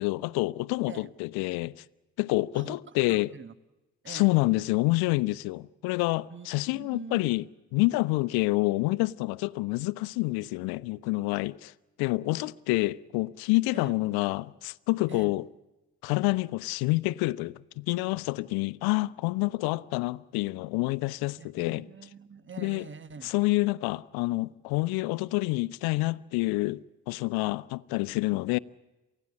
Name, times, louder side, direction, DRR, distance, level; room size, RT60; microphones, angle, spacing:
voice 1, 0.0-1.7 2.2-3.3 4.1-7.4 7.7-11.7 12.0-15.4 16.0-21.9 22.6-22.9 23.2-28.6, left 21 dB, 70° left, 0.7 m, -28 dB
voice 2, 3.1-3.5 4.0-4.3 6.3-7.3 13.7-14.0 15.1-15.4 21.4-23.3, right 6 dB, 30° right, 1.3 m, -45 dB
28.0 x 16.5 x 8.5 m
hypercardioid pair, 50°, 39 cm